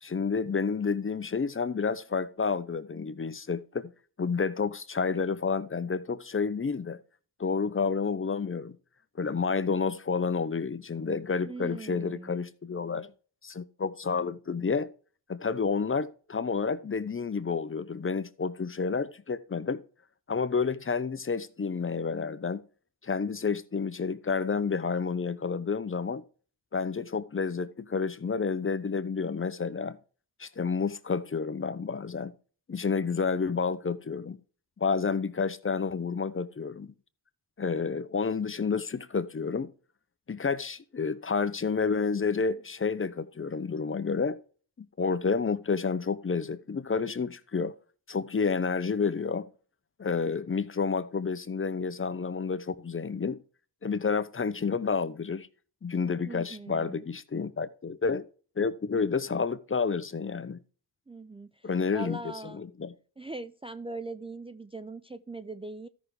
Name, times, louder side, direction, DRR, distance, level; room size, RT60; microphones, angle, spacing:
voice 1, 0.0-3.9 4.2-7.0 7.4-8.8 9.2-13.1 13.4-14.9 15.3-19.8 20.3-22.6 23.0-26.2 26.7-30.0 30.4-32.3 32.7-34.4 34.8-36.9 37.6-39.7 40.3-44.4 44.8-47.7 48.1-49.5 50.0-53.4 53.8-55.5 55.8-58.2 58.6-60.6 61.6-62.9, left 5 dB, 30° left, 0.8 m, -30 dB
voice 2, 11.4-12.4 56.3-57.1 61.1-62.6 63.2-65.9, right 3 dB, 15° right, 0.5 m, -41 dB
13.5 x 6.1 x 3.3 m
cardioid pair, 60°, 43 cm